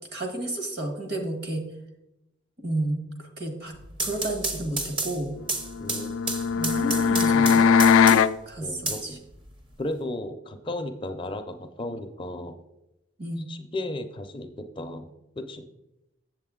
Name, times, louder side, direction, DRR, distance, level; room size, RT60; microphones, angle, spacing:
voice 1, 0.1-1.6 2.6-3.8 4.0-5.4 6.5-7.7 8.4-9.2 13.2-13.5, right 1 dB, 55° right, 5 dB, 1.5 m, -31 dB
sound 1, 3.7-8.4 8.9-9.8, right 2 dB, 25° right, 0.7 m, -31 dB
sound 2, 5.8-8.4, left 6 dB, 85° left, 0.3 m, -20 dB
voice 2, 8.6-9.2 9.8-12.6 13.5-15.1 15.4-15.7, left 1 dB, 25° left, 7 dB, 0.5 m, -34 dB
7.7 x 7.5 x 3.7 m, 0.88 s
head